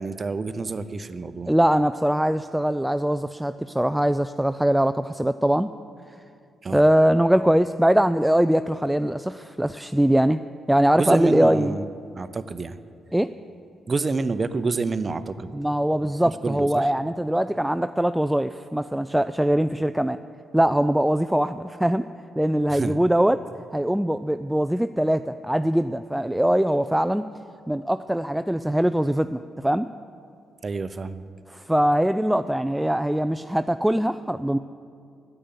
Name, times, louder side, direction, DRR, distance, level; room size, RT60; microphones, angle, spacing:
voice 1, 0.0-1.5 6.6-6.8 11.0-12.8 13.9-15.5 16.4-16.9 22.7-23.0 30.6-31.2, right 4 dB, 40° right, 13 dB, 0.7 m, -28 dB
voice 2, 1.5-5.7 6.7-10.4 10.7-11.8 13.1-13.3 15.5-20.2 20.5-22.1 22.4-23.4 23.7-27.2 27.7-29.9 31.5-34.6, right 1 dB, 5° right, 11 dB, 0.4 m, -22 dB
9.9 x 8.0 x 9.7 m, 2.5 s
hypercardioid pair, 40°, 0 cm